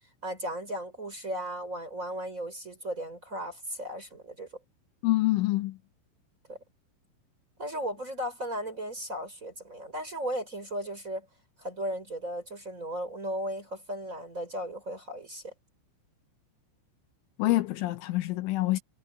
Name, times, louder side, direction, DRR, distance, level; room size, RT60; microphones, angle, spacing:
voice 1, 0.2-4.5 6.5-6.6 7.6-11.3 11.6-15.5, equal, 15° right, 4.1 m, -36 dB
voice 2, 5.0-5.8 17.4-18.8, left 18 dB, 80° left, 3.2 m, -26 dB
omnidirectional pair, 5.9 m